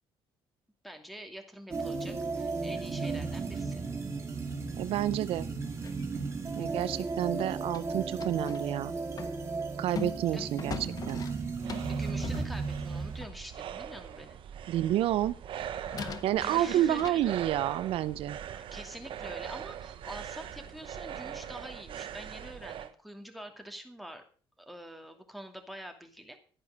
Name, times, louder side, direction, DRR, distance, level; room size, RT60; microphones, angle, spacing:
voice 1, 0.8-3.8 10.3-10.5 11.9-14.4 16.0-16.1 16.4-17.4 18.5-24.2 24.6-26.4, equal, ahead, 6 dB, 2.6 m, -45 dB
sound 1, 1.7-13.2, right 4 dB, 30° right, 2.6 m, -35 dB
voice 2, 4.8-5.5 6.6-8.9 9.8-10.8 11.1-11.4 14.7-15.3 16.2-18.4, right 12 dB, 80° right, 15 dB, 0.7 m, -29 dB
sound 2, 5.8-8.7 9.1-13.6 15.2-15.3 15.9-17.1, left 6 dB, 40° left, 1.3 m, -42 dB
sound 3, 11.1-22.9, right 9 dB, 65° right, 1.2 m, -42 dB
12.0 x 10.5 x 6.5 m, 0.40 s
cardioid pair, 135°, 10 cm